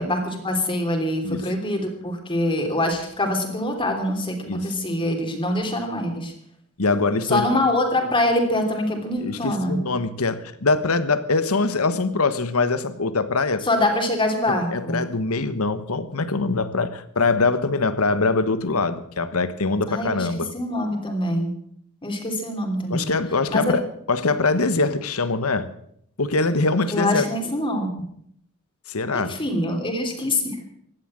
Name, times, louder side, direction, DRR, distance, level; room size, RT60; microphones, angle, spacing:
voice 1, 0.0-6.3 7.2-9.8 13.6-15.0 19.9-20.3 20.5-21.5 22.0-23.1 23.5-23.7 26.9-28.1 29.1-30.6, left 1 dB, 25° left, 3 dB, 3.1 m, -24 dB
voice 2, 6.8-7.5 9.2-13.6 14.5-20.5 22.9-25.7 26.2-27.3 28.9-29.4, left 3 dB, 80° left, 13 dB, 1.3 m, -23 dB
16.5 x 11.5 x 7.6 m, 0.70 s
head